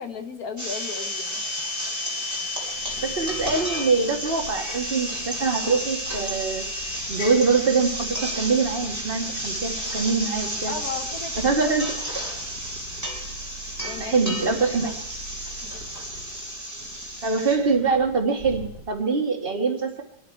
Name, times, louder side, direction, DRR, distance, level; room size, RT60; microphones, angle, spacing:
voice 1, 0.0-1.4 10.7-11.8 13.8-14.2 14.4-15.0 15.6-15.8, left 5 dB, 60° left, 6 dB, 1.7 m, -36 dB
sound 1, 0.6-17.6, right 1 dB, 10° right, 2.6 m, -32 dB
sound 2, 0.7-8.3, left 8 dB, 85° left, 2.3 m, -38 dB
Purr, 2.3-19.2, right 1 dB, 70° right, 2.1 m, -44 dB
voice 2, 3.0-6.6 7.1-10.7 11.4-11.9 14.0-14.9 17.2-20.0, right 4 dB, 35° right, 2 dB, 1.9 m, -24 dB
24.0 x 11.5 x 4.6 m, 0.79 s
omnidirectional pair, 1.8 m